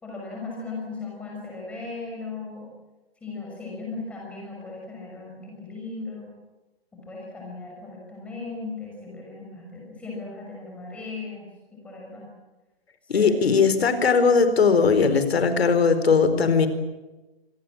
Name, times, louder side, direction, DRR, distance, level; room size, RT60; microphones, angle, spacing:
voice 1, 0.0-2.7 3.2-6.3 6.9-11.4 11.7-12.3 13.1-13.3, left 3 dB, 5° left, -2 dB, 6.1 m, -37 dB
voice 2, 13.1-16.7, left 5 dB, 80° left, 10 dB, 4.5 m, -19 dB
26.0 x 19.0 x 9.0 m, 1.1 s
hypercardioid pair, 180°, 30 cm